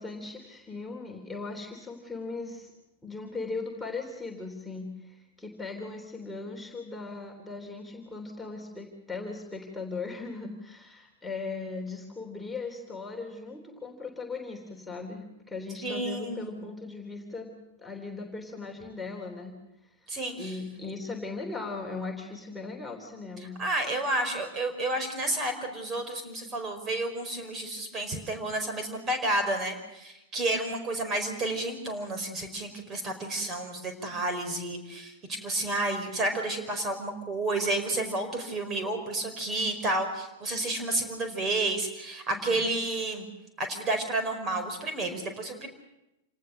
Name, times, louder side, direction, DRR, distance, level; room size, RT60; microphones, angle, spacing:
voice 1, 0.0-2.7 3.0-17.5 17.8-19.5 20.0-23.6 42.3-42.6, left 3 dB, 5° left, 0 dB, 3.4 m, -38 dB
voice 2, 15.8-16.7 20.1-20.6 23.6-43.3 43.6-45.7, right 2 dB, 25° right, 6 dB, 5.0 m, -31 dB
28.0 x 18.5 x 6.6 m, 0.92 s
figure-of-eight pair, 100°, 0 cm